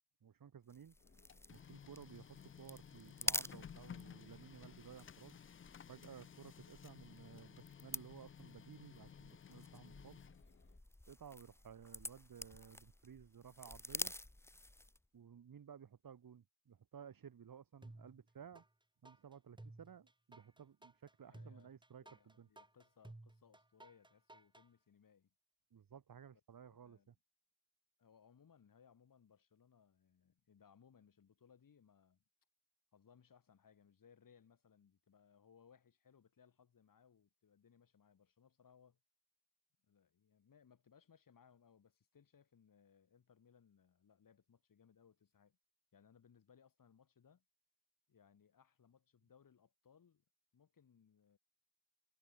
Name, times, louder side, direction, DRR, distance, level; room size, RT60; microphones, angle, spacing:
voice 1, 0.2-1.0 1.5-5.4 5.9-10.2 11.1-14.1 15.1-18.6 19.0-22.5 25.7-27.1, right 8 dB, 45° right, 4.0 m, -56 dB
sound 1, 0.7-15.1, left 1 dB, 5° left, 1.1 m, -48 dB
Printer, 1.0-10.8, left 8 dB, 25° left, 0.7 m, -56 dB
sound 2, 17.8-18.7 19.0-24.7, right 2 dB, 10° right, 2.3 m, -57 dB
voice 2, 21.2-21.7 22.0-25.3 26.6-27.1 28.0-32.2 32.9-39.0 39.8-45.6 45.9-47.4 48.1-50.2 50.5-51.4, left 7 dB, 45° left, 6.0 m, -68 dB
hypercardioid pair, 50°, 45 cm